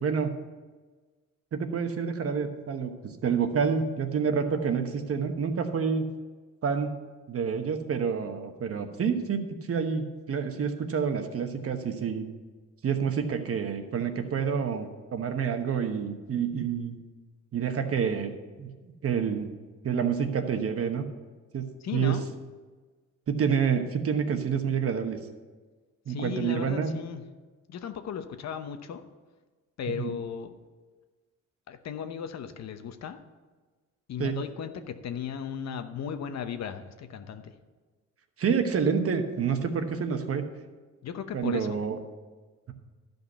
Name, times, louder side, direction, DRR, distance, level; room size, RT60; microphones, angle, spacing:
voice 1, 1.5-6.0 6.6-6.9 7.3-12.2 12.8-17.0 17.5-18.7 19.0-19.5 19.8-21.0 21.5-21.6 21.9-22.2 23.3-25.2 26.1-26.9 30.0-30.1 34.2-34.3 38.4-40.4 41.3-42.0, right 6 dB, 50° right, 6 dB, 1.2 m, -28 dB
voice 2, 21.8-22.2 26.1-27.2 27.7-29.0 29.8-30.5 31.7-33.2 34.1-37.5 41.0-41.8, left 7 dB, 60° left, 9 dB, 0.9 m, -36 dB
12.0 x 5.4 x 6.7 m, 1.4 s
cardioid pair, 90°, 30 cm